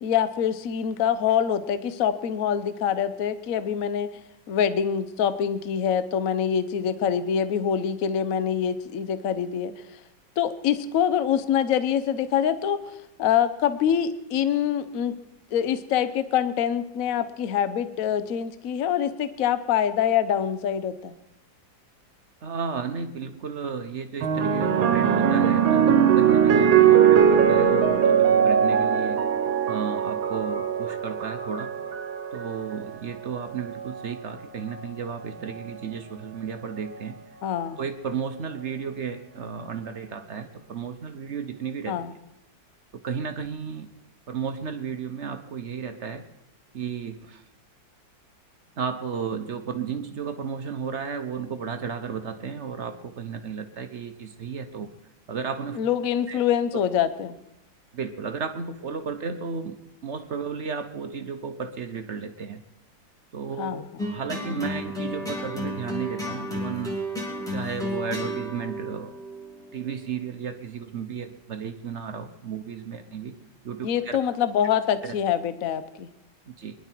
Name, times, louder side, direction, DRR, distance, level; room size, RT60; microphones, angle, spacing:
voice 1, 0.0-4.1 4.5-9.8 10.4-12.8 13.2-15.1 15.5-21.1 37.4-37.8 41.9-42.1 55.8-57.4 63.6-64.1 73.8-76.1, left 9 dB, 55° left, 12 dB, 1.0 m, -25 dB
voice 2, 22.4-29.2 29.7-31.7 32.3-37.1 37.8-41.9 43.0-43.9 44.3-46.2 46.7-47.4 48.8-54.9 55.3-55.8 56.3-56.4 57.9-59.8 60.0-62.6 63.3-63.8 64.1-67.0 67.5-69.1 69.7-73.3 73.6-74.1 75.0-75.1 76.5-76.7, right 6 dB, 50° right, 8 dB, 0.9 m, -33 dB
sound 1, 24.2-32.8 33.7-34.1, right 8 dB, 90° right, 1.7 m, -20 dB
sound 2, 64.0-70.4, equal, ahead, 2.7 m, -33 dB
22.5 x 11.0 x 4.5 m, 0.88 s
omnidirectional pair, 2.1 m